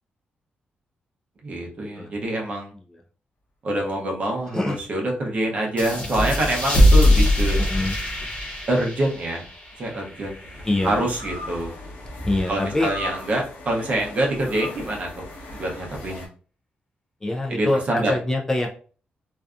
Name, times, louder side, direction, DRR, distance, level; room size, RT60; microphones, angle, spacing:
voice 1, 1.4-2.7 3.6-7.6 8.7-9.4 9.8-10.5 10.8-11.7 12.5-15.2 15.5-16.3 17.5-18.1, right 1 dB, 40° right, 0 dB, 0.7 m, -26 dB
sound 1, 5.3-6.9 8.7-16.3, left 1 dB, 75° left, 0.9 m, -39 dB
sound 2, 5.8-11.0, left 1 dB, 40° left, 0.9 m, -21 dB
voice 2, 7.6-8.0 10.6-11.1 12.2-12.9 17.2-18.7, left 2 dB, 15° left, 1 dB, 0.3 m, -25 dB
2.6 x 2.3 x 2.3 m, 0.40 s
wide cardioid pair, 165°, 3 cm